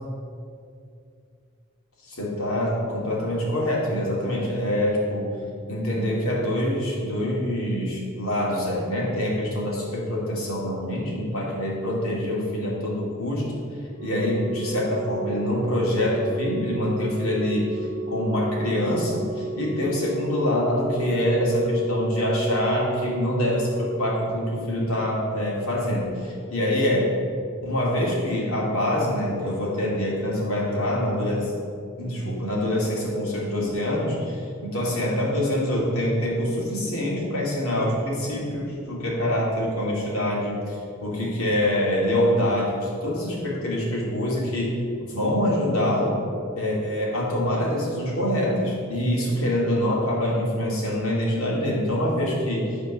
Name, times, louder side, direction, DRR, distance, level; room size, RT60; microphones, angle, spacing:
voice 1, 2.1-5.4 5.7-13.5 14.0-27.1 27.6-31.5 32.0-46.2 46.6-52.8, left 1 dB, 90° left, -4 dB, 2.6 m, -25 dB
Organ, 13.9-24.8 26.0-26.1, right 2 dB, 55° right, 0.6 m, -34 dB
11.0 x 4.4 x 6.6 m, 2.4 s
head